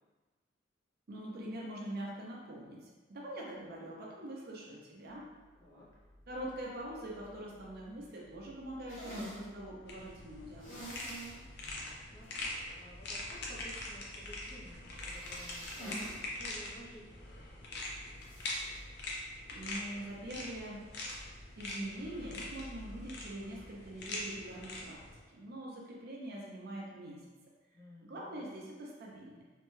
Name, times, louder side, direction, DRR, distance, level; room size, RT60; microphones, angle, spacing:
voice 1, 1.1-5.3 6.3-10.8 19.5-20.9 21.6-25.0 25.3-27.3 28.0-29.4, right 1 dB, 55° right, -3 dB, 0.5 m, -44 dB
sound 1, 5.1-24.2, left 1 dB, 20° right, 0.8 m, -56 dB
sound 2, 8.9-9.4 10.6-11.4 11.7-11.8 12.2-12.3 15.0-16.2 16.5-16.6 18.2-18.6, right 1 dB, 45° left, 1.0 m, -45 dB
sound 3, 9.9-25.2, left 2 dB, 60° left, 0.5 m, -43 dB
voice 2, 11.4-12.3 12.8-18.4 27.7-28.4, equal, 15° left, -7 dB, 0.6 m, -55 dB
2.6 x 2.2 x 3.0 m, 1.3 s
head